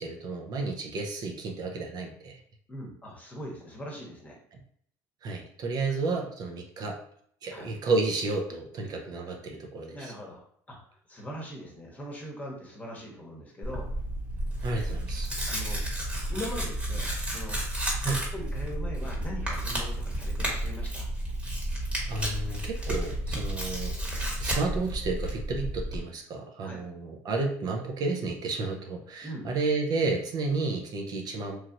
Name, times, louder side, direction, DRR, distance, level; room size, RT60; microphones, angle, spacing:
voice 1, 0.0-2.4 5.2-7.0 7.4-10.1 14.6-15.3 18.0-18.2 22.1-23.9 24.4-31.6, right 3 dB, 50° right, 2 dB, 0.6 m, -31 dB
voice 2, 2.7-4.4 7.5-7.7 9.9-10.4 10.7-10.8 11.1-13.9 15.5-15.8 16.3-17.6 18.0-21.1 26.6-26.8 29.2-29.5, equal, 20° left, -1 dB, 1.1 m, -41 dB
Tearing, 13.6-26.0, right 1 dB, 15° right, 1.3 m, -32 dB
3.1 x 2.4 x 2.8 m, 0.64 s
supercardioid pair, 80°, 8 cm